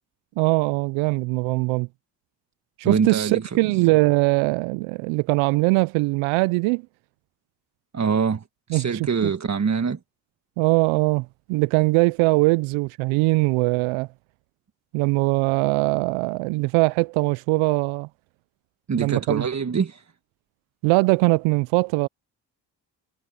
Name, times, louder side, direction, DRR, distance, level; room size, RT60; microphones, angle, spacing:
voice 1, 0.4-1.9 2.8-6.8 8.7-9.3 10.6-14.1 14.9-18.1 19.0-19.5 20.8-22.1, right 24 dB, 85° right, 0.6 m, -21 dB
voice 2, 2.8-3.8 7.9-8.4 8.7-10.0 18.9-20.0, right 6 dB, 35° right, 1.5 m, -24 dB
hypercardioid pair, 45°, 48 cm